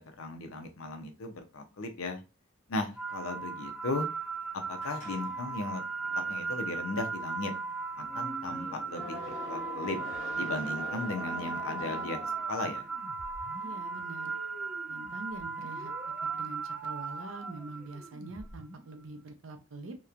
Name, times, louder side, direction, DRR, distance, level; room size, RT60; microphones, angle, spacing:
voice 1, 0.0-2.2 2.7-4.1 4.7-5.8 6.1-7.5 8.0-10.0 10.4-12.9, left 2 dB, 85° left, 5 dB, 0.6 m, -36 dB
sound 1, 3.0-18.1, right 4 dB, 5° right, 0.4 m, -37 dB
sound 2, 4.8-12.9, left 1 dB, 40° left, 0.9 m, -46 dB
sound 3, 8.4-19.0, right 2 dB, 45° right, 0.8 m, -50 dB
voice 2, 13.6-14.3 14.9-15.9 16.3-20.0, right 3 dB, 70° right, 7 dB, 0.5 m, -44 dB
2.9 x 2.2 x 2.4 m, 0.31 s
head